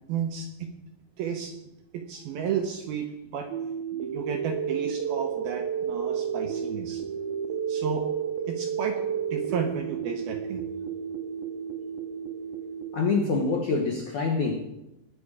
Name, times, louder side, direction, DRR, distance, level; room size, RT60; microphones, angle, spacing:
voice 1, 0.1-0.7 1.2-1.5 1.9-3.5 3.9-7.0 7.7-8.1 8.5-9.0 9.3-10.7, right 7 dB, 75° right, 4 dB, 2.3 m, -32 dB
sound 1, 3.5-13.5, right 7 dB, 90° right, 2.0 m, -32 dB
voice 2, 12.9-14.5, left 4 dB, 80° left, 2 dB, 1.7 m, -25 dB
20.0 x 7.9 x 4.9 m, 0.92 s
omnidirectional pair, 5.4 m